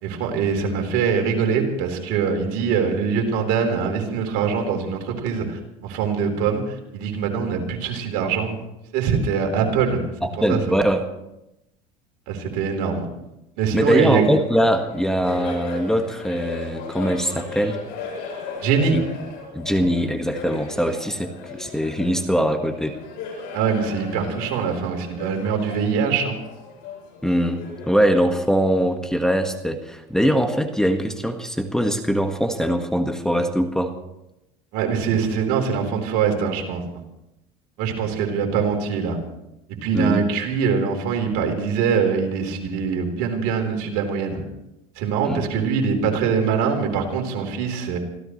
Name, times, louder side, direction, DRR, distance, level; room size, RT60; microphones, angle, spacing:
voice 1, 0.0-8.6 8.9-10.0 10.5-10.8 12.3-13.1 13.6-14.3 18.6-19.0 23.5-26.4 34.7-36.8 37.8-39.2 39.7-44.4 45.0-48.0, right 6 dB, 75° right, 3 dB, 3.9 m, -23 dB
voice 2, 10.2-11.0 13.7-17.8 18.9-19.1 19.5-23.0 27.2-33.9 39.9-40.3 45.2-45.4, equal, 5° left, 5 dB, 1.6 m, -22 dB
Laughter, 14.0-29.0, left 4 dB, 75° left, 7.7 m, -37 dB
25.5 x 16.0 x 3.2 m, 0.89 s
supercardioid pair, 95°, 18 cm